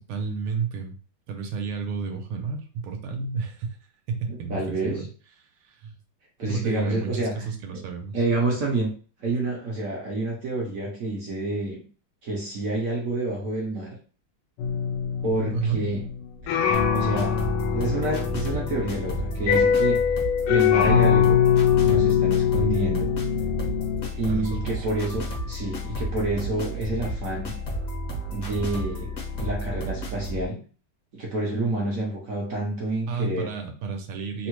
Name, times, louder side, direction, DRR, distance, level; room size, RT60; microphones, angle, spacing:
voice 1, 0.1-0.9 1.3-3.8 4.1-5.1 5.7-5.9 6.4-8.2 15.5-15.8 24.3-24.9 33.1-34.5, right 5 dB, 80° right, 4 dB, 1.5 m, -31 dB
voice 2, 4.3-5.0 6.4-7.4 7.7-7.8 8.1-8.9 9.2-11.8 12.2-14.0 15.2-16.0 16.9-20.0 20.5-21.4 21.8-23.1 24.2-27.6 28.3-29.1 29.3-30.6 31.1-33.6 34.4-34.5, right 2 dB, 65° right, -2 dB, 0.8 m, -28 dB
sound 1, 14.6-24.1, left 8 dB, 80° left, 1.4 m, -23 dB
sound 2, 16.7-30.5, equal, 60° left, 0.6 m, -32 dB
3.5 x 2.1 x 3.0 m, 0.39 s
omnidirectional pair, 2.3 m